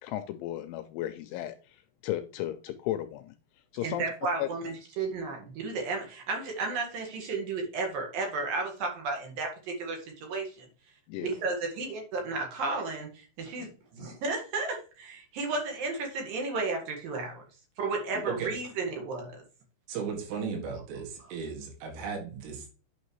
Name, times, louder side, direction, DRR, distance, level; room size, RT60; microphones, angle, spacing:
voice 1, 0.0-3.3 3.7-4.0 4.4-4.5 11.1-11.3 13.6-13.7 18.1-18.3, left 13 dB, 85° left, 9 dB, 2.8 m, -35 dB
voice 2, 3.8-10.7 11.2-17.4 17.8-19.3, right 3 dB, 60° right, 1 dB, 2.8 m, -33 dB
voice 3, 19.9-22.8, right 6 dB, 85° right, 1 dB, 4.7 m, -36 dB
9.2 x 6.6 x 3.1 m, 0.36 s
omnidirectional pair, 5.8 m